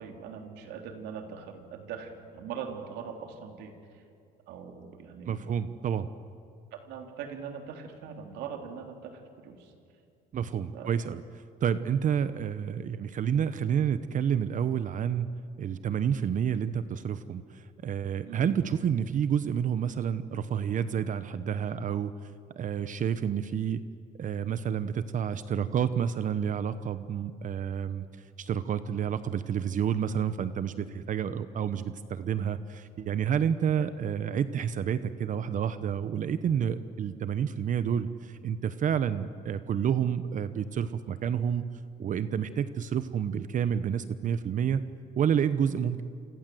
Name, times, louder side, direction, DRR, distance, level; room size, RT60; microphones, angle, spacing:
voice 1, 0.0-4.0 4.5-5.6 6.7-9.7 10.7-10.9 18.2-18.6 33.8-33.9, right 7 dB, 85° right, 4 dB, 3.6 m, -41 dB
voice 2, 5.3-6.1 10.3-11.2 11.6-15.3 15.6-22.1 22.6-23.8 24.2-28.1 28.4-41.6 42.0-44.8 45.2-46.0, right 8 dB, 50° right, 12 dB, 1.0 m, -29 dB
28.0 x 25.5 x 7.9 m, 2.5 s
cardioid pair, 110°, 17 cm